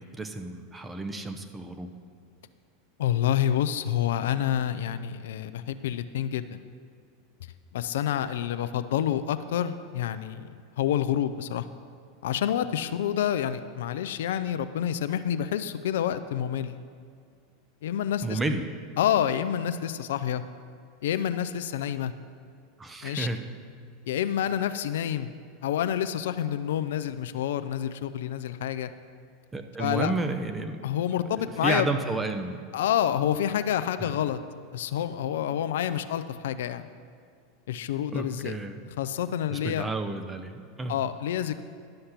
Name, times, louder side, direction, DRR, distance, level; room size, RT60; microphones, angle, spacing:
voice 1, 0.0-1.9 18.2-18.8 22.8-23.4 29.5-30.8 31.6-32.6 34.0-34.1 38.1-38.8 39.5-41.0, right 2 dB, 15° right, 7 dB, 0.9 m, -31 dB
voice 2, 3.0-6.6 7.7-11.6 12.2-16.8 17.8-18.4 19.0-20.4 21.0-22.1 23.0-23.3 24.1-25.3 25.6-28.9 29.8-30.1 30.8-31.9 32.7-34.4 34.7-36.9 37.7-38.6 39.0-39.9 40.9-41.6, left 10 dB, 80° left, 11 dB, 0.4 m, -28 dB
11.5 x 6.5 x 5.8 m, 2.2 s
hypercardioid pair, 105°, 0 cm